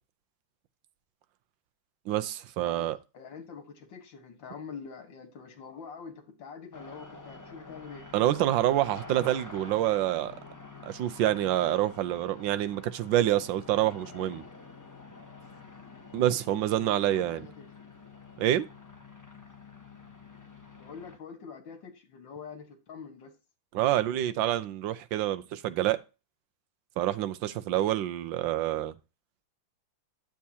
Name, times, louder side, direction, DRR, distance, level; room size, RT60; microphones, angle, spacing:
voice 1, 2.1-3.0 8.1-10.4 10.8-14.4 16.1-17.5 18.4-18.7 23.7-26.0 27.0-28.9, right 13 dB, 85° right, 1.4 m, -27 dB
voice 2, 2.7-8.1 16.7-17.7 20.8-23.3, left 6 dB, 80° left, 2.2 m, -45 dB
sound 1, 6.7-21.2, left 4 dB, 15° left, 0.7 m, -48 dB
10.5 x 7.1 x 2.8 m
omnidirectional pair, 2.0 m